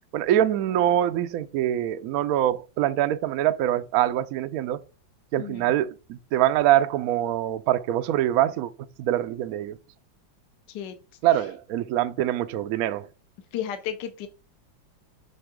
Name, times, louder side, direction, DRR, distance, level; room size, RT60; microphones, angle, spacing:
voice 1, 0.1-4.8 5.3-8.7 9.0-9.8 11.2-13.1, right 12 dB, 75° right, 0.8 m, -24 dB
voice 2, 13.5-14.3, left 9 dB, 70° left, 1.3 m, -33 dB
6.9 x 3.6 x 5.0 m
omnidirectional pair, 2.1 m